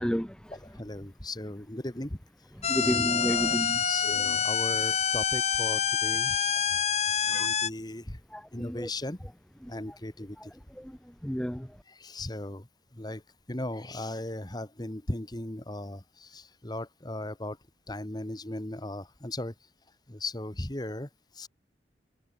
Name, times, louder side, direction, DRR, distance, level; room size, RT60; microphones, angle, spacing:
voice 1, 0.0-0.5 2.6-4.4 7.3-7.5 8.3-8.9 9.6-9.7 10.4-10.5 10.7-11.8, equal, 5° left, 1.4 m, -32 dB
voice 2, 0.5-2.2 2.7-6.4 7.3-8.2 8.5-9.3 9.7-10.5 11.9-12.7 12.9-13.2 13.5-17.6 17.9-19.5 20.1-21.1 21.3-21.5, left 1 dB, 25° left, 1.7 m, -37 dB
sound 1, 2.6-7.7, left 7 dB, 40° left, 1.7 m, -27 dB
head